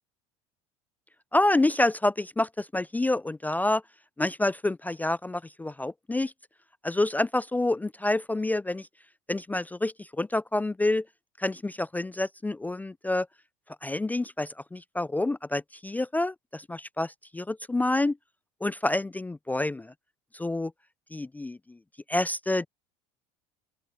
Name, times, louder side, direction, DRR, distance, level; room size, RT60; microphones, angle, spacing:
voice 1, 1.3-3.8 4.2-6.3 6.8-8.9 9.3-11.1 11.4-13.3 13.8-18.2 18.6-19.9 20.3-20.7 21.1-21.8 22.1-22.7, left 2 dB, 10° left, 0.4 m, -28 dB
open air
hypercardioid pair, 80°, 18 cm